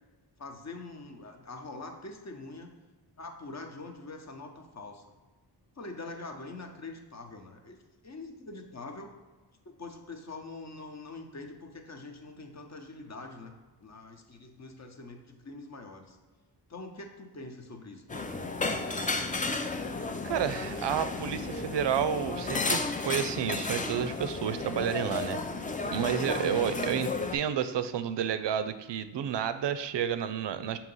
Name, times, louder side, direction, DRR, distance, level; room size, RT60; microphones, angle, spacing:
voice 1, 0.4-2.7 3.2-5.0 5.8-7.8 8.0-9.1 9.6-13.5 13.8-16.2 16.7-18.6 26.3-27.0, left 3 dB, 40° left, 4 dB, 0.9 m, -44 dB
sound 1, 18.1-27.4, left 3 dB, 20° left, 0.4 m, -33 dB
voice 2, 20.2-25.4 25.9-30.8, right 9 dB, 80° right, 11 dB, 0.5 m, -30 dB
6.3 x 2.9 x 5.4 m, 1.3 s
wide cardioid pair, 105°, 42 cm